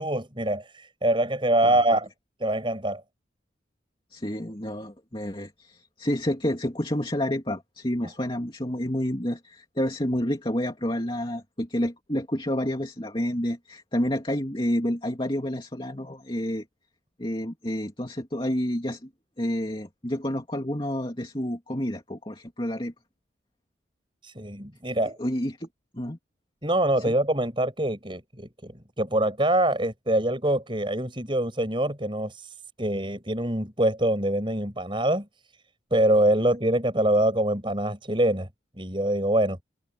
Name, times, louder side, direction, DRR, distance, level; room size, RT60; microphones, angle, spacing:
voice 1, 0.0-2.1 2.4-3.0 24.2-25.2 26.6-35.3 35.9-38.5 38.8-39.6, right 1 dB, 25° right, 6.3 m, -24 dB
voice 2, 4.1-16.6 17.2-19.1 19.4-22.9 25.2-25.7 25.9-26.2 27.1-27.2, equal, 25° left, 2.7 m, -29 dB
head